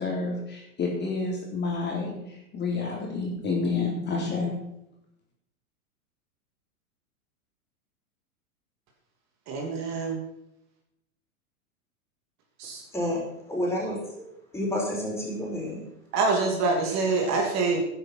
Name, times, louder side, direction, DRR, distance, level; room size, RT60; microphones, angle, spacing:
voice 1, 0.0-4.5, left 4 dB, 25° left, -1 dB, 3.6 m, -29 dB
voice 2, 9.5-10.2 12.6-12.8 16.1-17.8, right 3 dB, 40° right, 2 dB, 2.9 m, -25 dB
voice 3, 13.5-14.3 14.5-15.8, left 1 dB, 5° left, -3 dB, 5.7 m, -29 dB
11.5 x 10.0 x 6.0 m, 0.83 s
hypercardioid pair, 120°, 43 cm